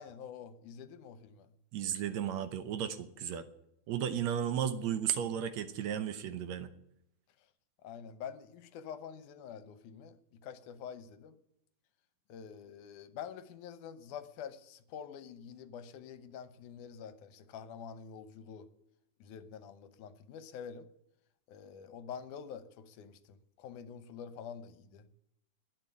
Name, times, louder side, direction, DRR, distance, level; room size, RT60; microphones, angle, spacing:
voice 1, 0.0-1.5 7.8-11.4 12.3-18.7 19.2-20.9 21.5-25.1, left 7 dB, 80° left, 13 dB, 2.4 m, -47 dB
voice 2, 1.7-3.5 3.9-6.7, right 9 dB, 70° right, 11 dB, 2.0 m, -34 dB
12.0 x 9.1 x 9.4 m, 0.79 s
omnidirectional pair, 3.6 m